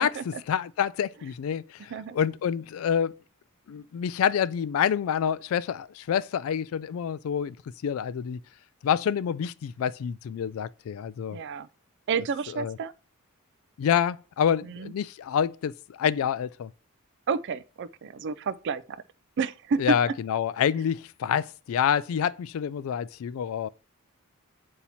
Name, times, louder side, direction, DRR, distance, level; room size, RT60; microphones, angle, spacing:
voice 1, 0.0-3.2 3.7-7.6 7.8-8.4 8.8-11.4 12.5-12.8 13.8-16.7 19.8-23.7, left 8 dB, 65° left, 0.3 m, -27 dB
voice 2, 11.3-11.7 12.1-12.9 14.6-14.9 17.3-19.0 19.4-20.0, right 5 dB, 55° right, 0.4 m, -30 dB
8.4 x 2.9 x 4.1 m
head